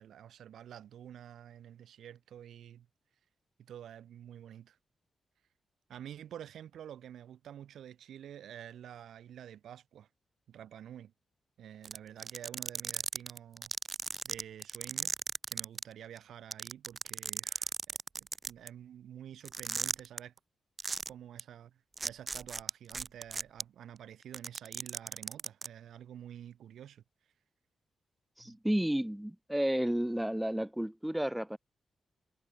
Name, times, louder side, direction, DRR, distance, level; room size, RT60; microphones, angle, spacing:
voice 1, 0.0-2.9 3.6-4.8 5.9-10.1 10.5-11.1 11.6-13.7 14.2-15.1 15.5-20.3 21.1-27.0 28.4-28.5, right 10 dB, 85° right, 6.9 m, -49 dB
sound 1, 11.8-15.8 16.2-16.3 16.5-18.7 19.5-20.2 20.8-21.1 21.4-21.5 22.0-23.6 24.2-25.7, right 4 dB, 40° right, 0.5 m, -35 dB
voice 2, 28.4-31.6, right 1 dB, 5° right, 4.8 m, -32 dB
cardioid pair, 55°, 0 cm